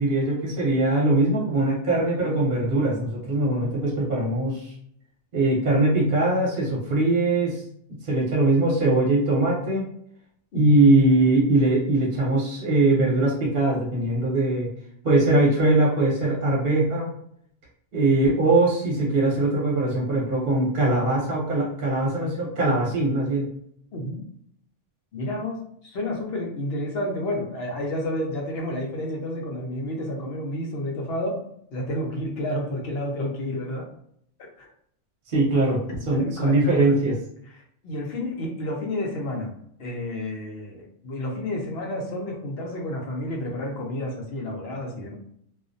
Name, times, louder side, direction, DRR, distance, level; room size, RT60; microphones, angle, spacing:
voice 1, 0.0-4.7 5.3-7.6 7.9-9.8 10.5-14.7 15.0-17.1 17.9-23.5 35.3-37.2, right 2 dB, 50° right, -4 dB, 0.9 m, -21 dB
voice 2, 23.9-24.2 25.1-33.9 34.6-34.7 36.2-36.9 37.8-45.1, left 1 dB, 65° left, 0 dB, 0.9 m, -30 dB
2.4 x 2.1 x 2.6 m, 0.67 s
omnidirectional pair, 1.2 m